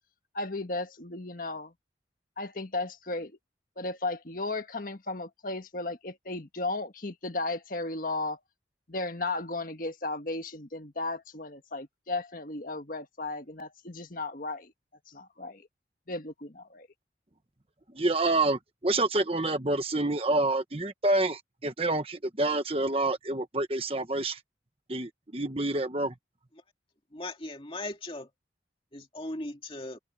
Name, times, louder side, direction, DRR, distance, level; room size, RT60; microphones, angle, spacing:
voice 1, 0.3-1.7 2.4-3.4 3.8-8.4 8.9-14.7 15.1-15.7 16.1-16.9, left 2 dB, 50° left, 1.6 m, -35 dB
voice 2, 17.9-24.4 24.9-26.1, right 2 dB, 30° right, 1.3 m, -28 dB
voice 3, 27.1-28.3 28.9-30.0, left 2 dB, 30° left, 2.5 m, -38 dB
open air
head